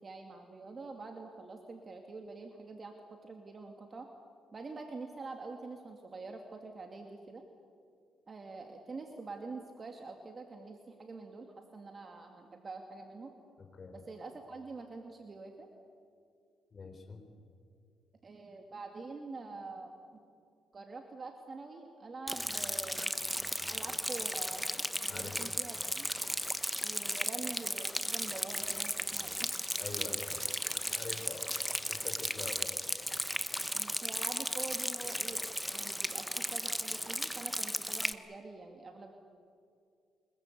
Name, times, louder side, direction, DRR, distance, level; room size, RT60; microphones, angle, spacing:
voice 1, 0.0-2.9 3.2-4.1 4.5-7.4 8.3-13.3 13.9-15.7 18.2-19.9 20.7-23.1 23.7-26.1 26.8-29.5 33.7-35.4 35.7-39.1, right 3 dB, 35° right, 4 dB, 2.3 m, -46 dB
voice 2, 13.6-13.9 16.7-17.2 25.1-25.4 25.6-25.7 29.7-31.5 31.9-32.7, left 4 dB, 40° left, 4 dB, 4.1 m, -45 dB
Rain, 22.3-38.1, equal, ahead, 1.1 m, -35 dB
24.5 x 22.0 x 8.5 m, 2.3 s
cardioid pair, 90°, 0 cm